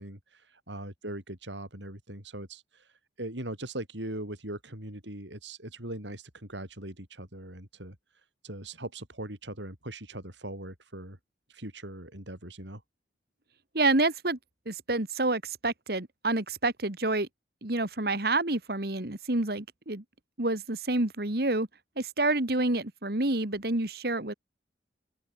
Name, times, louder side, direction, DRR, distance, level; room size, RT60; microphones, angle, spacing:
voice 1, 0.0-11.2 11.5-12.8, right 1 dB, 85° right, 7.7 m, -40 dB
voice 2, 13.7-14.4 14.7-17.3 17.6-20.0 20.4-21.7 22.0-24.3, right 2 dB, 55° right, 2.1 m, -28 dB
head